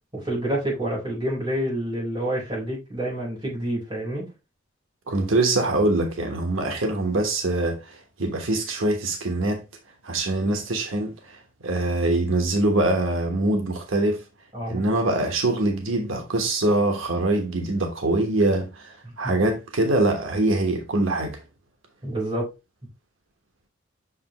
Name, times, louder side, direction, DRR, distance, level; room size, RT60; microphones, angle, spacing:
voice 1, 0.1-4.3 14.5-14.8 19.0-19.1 22.0-22.5, right 1 dB, 25° right, 4.3 m, -28 dB
voice 2, 5.1-9.6 10.0-14.2 14.7-21.4, right 2 dB, 85° right, 1.2 m, -24 dB
6.3 x 5.3 x 3.0 m
head